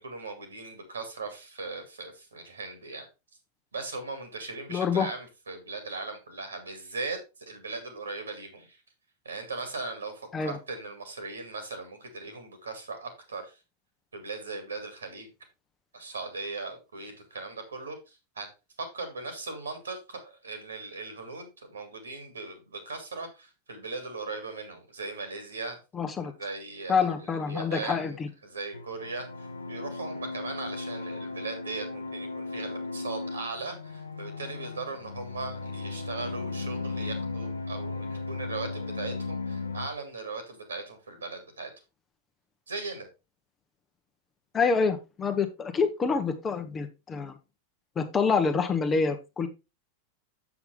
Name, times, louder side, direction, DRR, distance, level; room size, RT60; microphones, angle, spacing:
voice 1, 0.0-3.1 3.7-8.8 9.2-13.6 14.1-15.3 15.9-18.5 18.8-25.8 26.2-41.7 42.7-43.1, right 3 dB, 75° right, 7 dB, 2.2 m, -38 dB
voice 2, 4.7-5.1 10.3-10.6 25.9-26.3 26.9-28.3 44.5-47.4 48.0-49.5, left 5 dB, 20° left, 7 dB, 0.9 m, -27 dB
sound 1, 28.7-39.9, left 3 dB, 80° left, 0.8 m, -36 dB
7.1 x 7.0 x 3.3 m, 0.26 s
figure-of-eight pair, 90°, 0 cm